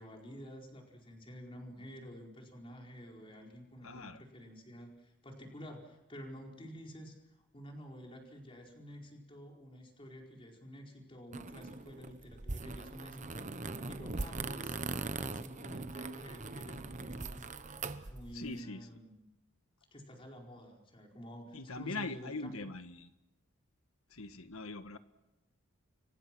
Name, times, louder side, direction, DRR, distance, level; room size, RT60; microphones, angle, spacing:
voice 1, 0.0-7.1 7.5-14.8 15.1-17.4 18.1-19.2 19.9-22.7, equal, 25° left, 1 dB, 4.6 m, -50 dB
voice 2, 3.8-4.2 18.3-18.9 21.5-23.1 24.1-25.0, left 3 dB, 80° left, 10 dB, 1.5 m, -42 dB
sound 1, 11.3-18.5, right 3 dB, 35° right, 1.0 m, -41 dB
29.5 x 25.0 x 6.2 m, 0.95 s
head